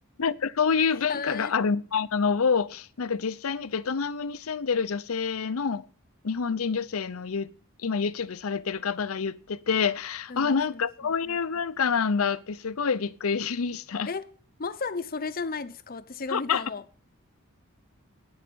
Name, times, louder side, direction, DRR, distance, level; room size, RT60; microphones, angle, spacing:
voice 1, 0.2-5.8 6.2-7.5 7.8-14.1 16.3-16.6, left 5 dB, 85° left, 0.6 m, -27 dB
voice 2, 1.1-1.5 10.3-11.1 14.1-16.8, left 4 dB, 45° left, 0.7 m, -34 dB
11.5 x 9.6 x 6.9 m
head